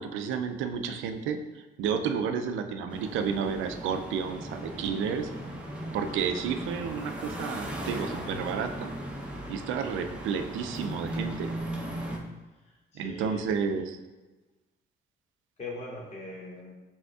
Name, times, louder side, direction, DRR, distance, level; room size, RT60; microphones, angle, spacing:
voice 1, 0.0-5.3 5.9-8.9 9.5-11.6 12.9-14.0, right 6 dB, 85° right, 7 dB, 0.4 m, -31 dB
sound 1, 2.9-12.2, right 1 dB, 5° right, 0.7 m, -37 dB
voice 2, 12.5-13.5 15.6-16.8, left 2 dB, 35° left, -3 dB, 0.7 m, -41 dB
5.0 x 3.4 x 2.4 m, 1.2 s
cardioid pair, 90°, 20 cm